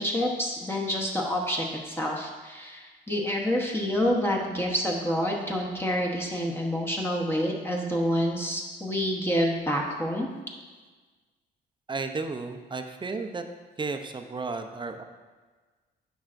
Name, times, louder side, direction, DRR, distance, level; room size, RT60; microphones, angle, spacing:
voice 1, 0.0-10.3, equal, 10° left, -2 dB, 1.1 m, -28 dB
voice 2, 11.9-13.4 13.8-15.0, right 4 dB, 25° right, 6 dB, 0.6 m, -33 dB
10.5 x 5.4 x 2.6 m, 1.4 s
cardioid pair, 90°, 20 cm